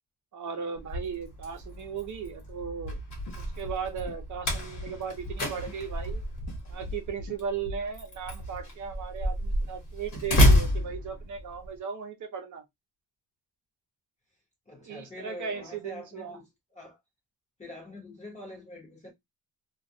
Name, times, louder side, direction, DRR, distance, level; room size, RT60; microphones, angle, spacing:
voice 1, 0.3-3.0 3.4-6.2 6.7-12.6 14.8-16.4, right 6 dB, 45° right, 0.7 m, -37 dB
Slam, 0.8-11.7, equal, 50° left, 1.1 m, -29 dB
sound 1, 2.8-3.3 3.6-4.1 4.4-4.9 5.2-5.7 6.0-6.5 6.8-7.3 7.6-7.8, left 1 dB, 75° left, 0.6 m, -38 dB
voice 2, 14.7-17.0 17.6-19.1, left 1 dB, 15° left, 0.8 m, -45 dB
2.3 x 2.1 x 2.6 m
wide cardioid pair, 180°, 41 cm